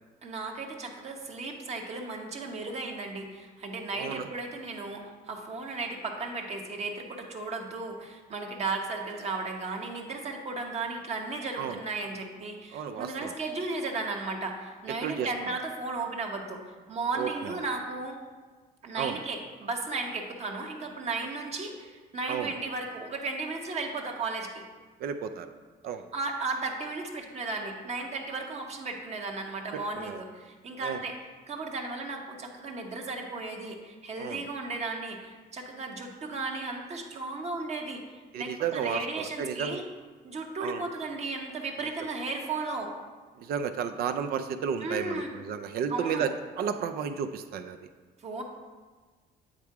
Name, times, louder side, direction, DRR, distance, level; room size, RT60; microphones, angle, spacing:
voice 1, 0.2-18.2 18.8-24.6 26.1-31.1 31.5-38.0 38.3-39.9 40.2-42.9 44.8-45.3 45.9-46.3 48.2-48.4, right 3 dB, 40° right, 1 dB, 1.0 m, -35 dB
voice 2, 4.0-4.3 11.6-11.8 12.7-13.3 14.9-15.6 17.2-17.6 19.0-19.2 22.3-22.5 25.0-25.5 25.8-26.1 29.7-30.2 30.8-31.0 34.2-34.4 38.3-39.8 40.6-40.8 43.4-47.8, right 7 dB, 65° right, 8 dB, 0.5 m, -33 dB
8.9 x 3.6 x 4.7 m, 1.4 s
cardioid pair, 110°, 17 cm